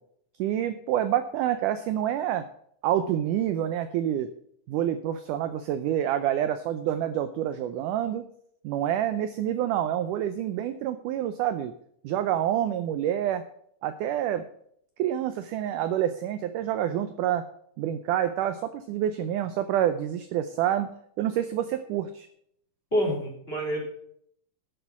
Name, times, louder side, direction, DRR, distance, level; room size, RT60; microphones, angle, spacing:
voice 1, 0.4-2.5 2.8-4.3 4.7-8.2 8.6-11.7 12.0-13.4 13.8-14.4 15.0-17.5 17.8-20.9 21.2-22.3, right 11 dB, 80° right, 10 dB, 1.9 m, -27 dB
voice 2, 22.9-23.8, equal, 15° left, -1 dB, 3.3 m, -27 dB
11.5 x 8.2 x 5.9 m, 0.68 s
omnidirectional pair, 4.3 m